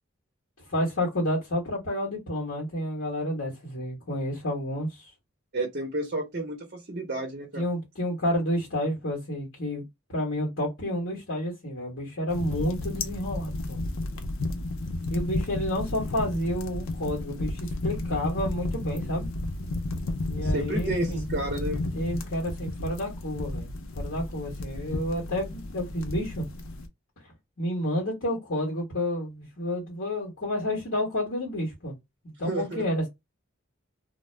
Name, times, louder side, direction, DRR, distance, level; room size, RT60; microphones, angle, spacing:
voice 1, 0.7-5.1 7.6-9.8 10.1-13.8 15.1-19.3 20.3-21.2 21.9-23.7 23.9-26.4 27.6-31.9 32.4-33.1, left 1 dB, 65° left, 1.1 m, -30 dB
voice 2, 5.5-7.6 20.4-21.8 32.4-32.8, right 2 dB, 45° right, 0.7 m, -31 dB
sound 1, 12.3-26.9, left 2 dB, 90° left, 0.5 m, -33 dB
2.3 x 2.0 x 3.1 m
head